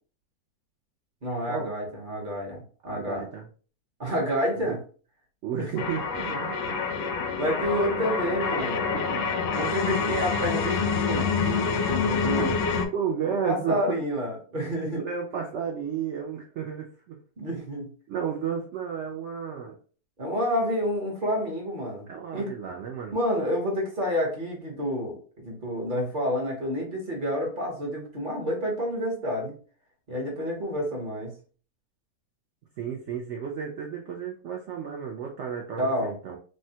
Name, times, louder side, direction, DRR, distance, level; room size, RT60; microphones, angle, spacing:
voice 1, 1.2-3.3 4.0-4.8 5.6-5.7 6.3-6.4 7.4-8.9 9.5-11.3 11.9-12.5 13.4-15.0 17.4-17.9 20.2-22.1 22.3-22.5 23.1-29.5 30.1-31.3 35.8-36.1, equal, 40° right, -1 dB, 0.8 m, -29 dB
voice 2, 2.9-3.4 4.7-4.8 5.4-6.8 8.9-9.4 12.4-12.5 12.9-14.0 14.9-17.2 18.1-19.8 22.1-23.1 32.8-36.4, right 7 dB, 65° right, 0 dB, 0.7 m, -32 dB
sound 1, 5.8-12.9, left 5 dB, 85° left, 1.1 m, -27 dB
3.4 x 2.2 x 2.7 m, 0.40 s
omnidirectional pair, 1.6 m